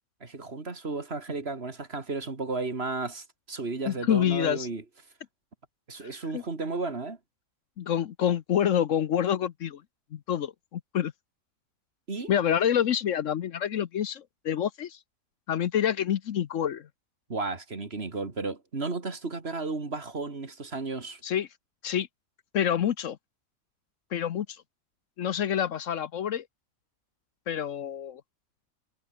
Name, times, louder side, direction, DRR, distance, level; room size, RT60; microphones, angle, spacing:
voice 1, 0.2-4.8 5.9-7.2 12.1-12.3 17.3-21.2, right 3 dB, 45° right, 2.6 m, -33 dB
voice 2, 3.9-4.7 6.3-6.4 7.8-9.8 10.1-11.1 12.3-15.0 15.5-16.9 21.2-21.5 21.8-22.1 22.5-23.2 24.1-24.5 25.2-26.4 27.5-28.2, left 9 dB, 65° left, 1.1 m, -27 dB
omnidirectional pair, 1.5 m